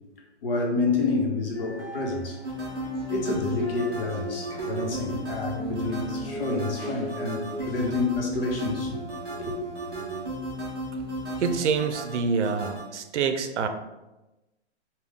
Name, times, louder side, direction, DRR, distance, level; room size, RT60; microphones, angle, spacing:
voice 1, 0.4-2.4 3.1-9.0 9.4-9.6, left 3 dB, 55° left, 0 dB, 0.9 m, -28 dB
sound 1, 1.5-7.2, right 2 dB, 80° left, 1.1 m, -44 dB
sound 2, 2.4-12.8, right 1 dB, 20° right, 0.6 m, -34 dB
voice 2, 11.4-13.7, right 5 dB, 80° right, 7 dB, 0.6 m, -26 dB
3.6 x 2.3 x 3.5 m, 1.0 s
hypercardioid pair, 170°, 34 cm